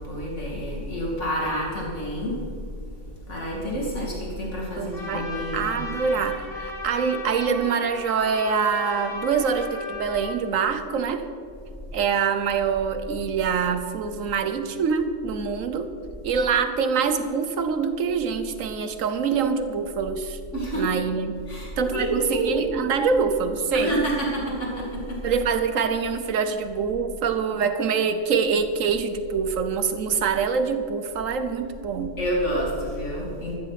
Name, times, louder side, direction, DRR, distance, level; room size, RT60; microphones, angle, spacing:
voice 1, 0.0-2.4 3.3-5.7 20.5-20.8 21.5-22.5 23.7-25.2 32.2-33.5, equal, 65° left, -3 dB, 2.9 m, -28 dB
voice 2, 4.8-11.3 11.9-15.9 16.2-20.4 20.7-21.4 21.8-24.0 25.2-32.2, right 6 dB, 85° right, 9 dB, 1.3 m, -25 dB
Trumpet, 4.9-10.4, left 3 dB, 45° left, 2.6 m, -36 dB
14.5 x 14.5 x 4.1 m, 2.5 s
omnidirectional pair, 1.3 m